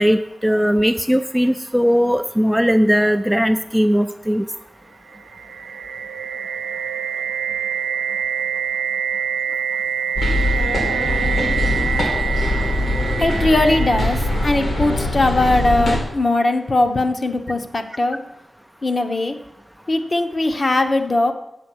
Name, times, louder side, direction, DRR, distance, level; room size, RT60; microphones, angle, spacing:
voice 1, 0.0-4.4, equal, ahead, 7 dB, 0.4 m, -18 dB
sound 1, 5.1-15.0, right 7 dB, 80° right, 0.4 m, -26 dB
sound 2, 10.2-16.0, left 1 dB, 75° left, 2.4 m, -22 dB
voice 2, 13.2-18.2 18.8-19.3 19.9-21.3, left 2 dB, 40° left, 6 dB, 0.9 m, -19 dB
8.1 x 7.5 x 6.2 m, 0.89 s
wide cardioid pair, 95°, 0 cm